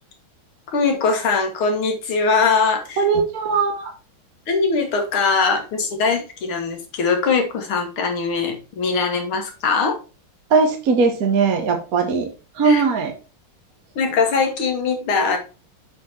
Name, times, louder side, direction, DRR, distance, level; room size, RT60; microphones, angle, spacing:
voice 1, 0.7-3.0 4.5-10.0 12.6-12.8 14.0-15.4, left 4 dB, 80° left, 4 dB, 2.3 m, -21 dB
voice 2, 3.0-3.9 10.5-12.3 12.5-13.1, right 5 dB, 50° right, 4 dB, 1.4 m, -19 dB
7.7 x 4.2 x 4.3 m, 0.33 s
omnidirectional pair, 2.3 m